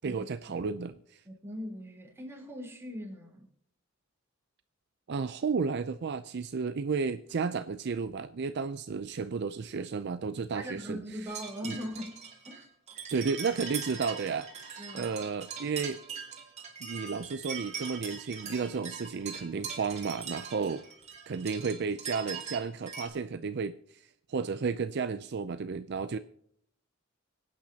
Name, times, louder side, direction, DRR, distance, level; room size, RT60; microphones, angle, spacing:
voice 1, 0.0-1.2 5.1-11.0 11.7-11.8 13.1-14.5 14.9-16.0 16.8-20.8 21.3-24.0 24.3-26.2, right 5 dB, 55° right, 11 dB, 0.5 m, -32 dB
voice 2, 1.2-3.5 10.5-12.7 14.8-15.2, equal, 10° right, -1 dB, 3.5 m, -40 dB
sound 1, 11.3-23.1, right 6 dB, 35° right, 2.7 m, -41 dB
25.5 x 9.0 x 2.8 m, 0.67 s
head